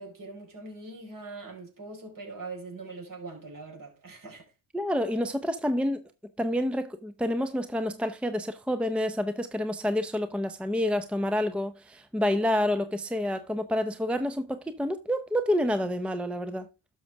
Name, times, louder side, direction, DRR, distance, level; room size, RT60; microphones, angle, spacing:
voice 1, 0.0-4.5, right 3 dB, 50° right, 4.8 m, -42 dB
voice 2, 4.7-6.0 6.4-16.7, left 1 dB, 5° right, 0.7 m, -28 dB
11.5 x 6.4 x 3.4 m
cardioid pair, 75°, 41 cm